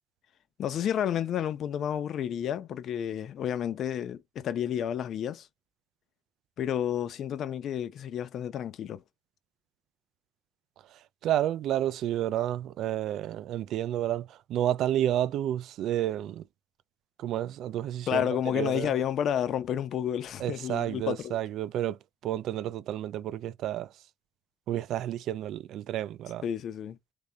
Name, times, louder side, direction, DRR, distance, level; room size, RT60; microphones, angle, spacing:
voice 1, 0.6-5.5 6.6-9.0 18.1-21.4 26.4-27.0, left 9 dB, 70° left, 0.9 m, -30 dB
voice 2, 10.8-16.5 17.2-18.9 20.4-23.9 24.7-26.4, right 12 dB, 80° right, 0.4 m, -31 dB
3.8 x 3.5 x 3.5 m
cardioid pair, 90°, 0 cm